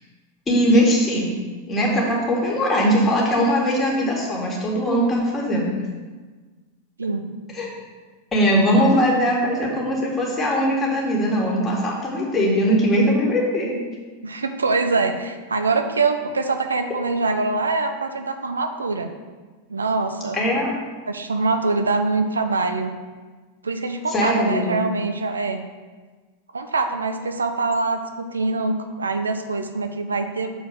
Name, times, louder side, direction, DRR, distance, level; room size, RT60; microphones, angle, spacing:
voice 1, 0.5-1.3 1.7-5.7 7.5-7.7 8.3-13.8 20.3-20.7 24.1-24.8, equal, 15° left, -3 dB, 2.2 m, -20 dB
voice 2, 14.2-19.1 19.7-20.4 21.1-22.9 23.6-25.6 26.5-30.5, right 3 dB, 75° right, 7 dB, 0.7 m, -24 dB
6.8 x 4.6 x 6.3 m, 1.4 s
figure-of-eight pair, 90°, 0 cm